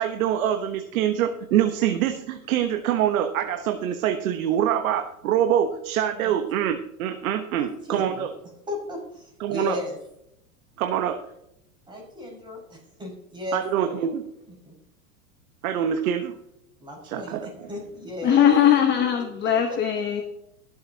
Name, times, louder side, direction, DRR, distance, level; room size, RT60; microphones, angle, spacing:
voice 1, 0.0-8.3 9.4-9.8 10.8-11.2 13.5-14.2 15.6-16.3 17.0-17.7, right 10 dB, 65° right, 6 dB, 1.2 m, -25 dB
voice 2, 7.6-8.3 8.7-10.0 11.9-14.1 14.5-14.7 16.8-18.5 19.7-19.8, left 2 dB, 10° right, -2 dB, 5.6 m, -35 dB
voice 3, 18.2-20.2, left 9 dB, 25° left, 4 dB, 1.1 m, -20 dB
23.0 x 7.9 x 2.9 m, 0.80 s
supercardioid pair, 140°, 45 cm